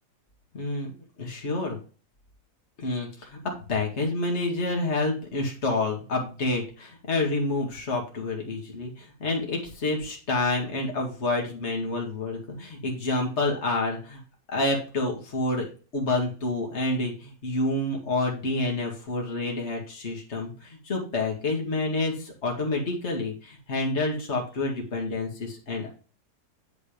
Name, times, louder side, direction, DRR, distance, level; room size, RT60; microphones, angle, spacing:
voice 1, 0.5-0.9 1.2-1.8 2.8-3.4 3.7-14.2 14.5-25.9, left 2 dB, 45° left, 0 dB, 2.3 m, -28 dB
8.8 x 4.2 x 5.1 m, 0.37 s
omnidirectional pair, 1.7 m